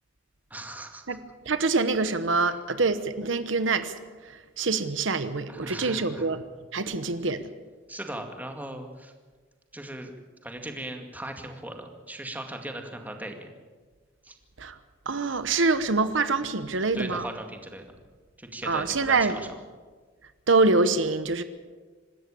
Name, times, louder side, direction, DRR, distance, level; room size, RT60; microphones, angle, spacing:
voice 1, 0.5-1.2 2.4-2.5 5.5-6.4 7.9-9.1 9.7-10.1 10.4-13.5 14.2-14.3 16.7-17.8 18.4-19.5, right 1 dB, 10° right, 4 dB, 2.2 m, -38 dB
voice 2, 1.5-3.9 4.6-6.4 6.7-7.5 14.6-14.7 15.1-17.3 18.7-19.4 20.5-21.4, right 3 dB, 75° right, 11 dB, 1.1 m, -25 dB
26.0 x 13.0 x 8.5 m, 1.4 s
head